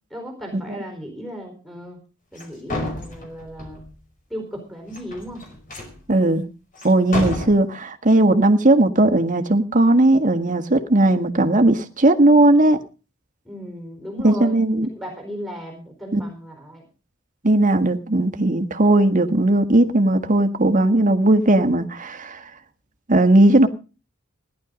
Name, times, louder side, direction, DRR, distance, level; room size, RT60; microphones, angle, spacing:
voice 1, 0.1-2.0 2.3-3.8 4.3-5.4 13.4-14.5 14.9-16.8, equal, ahead, 4.4 m, -35 dB
sound 1, 2.4-2.5 2.7-3.9 4.9-6.0 6.8-6.9 7.1-7.5, left 1 dB, 40° left, 5.4 m, -30 dB
voice 2, 6.1-6.4 6.8-12.8 14.2-14.9 16.1-16.2 17.4-22.4 23.1-23.7, right 1 dB, 40° right, 1.6 m, -17 dB
17.5 x 11.0 x 5.1 m
head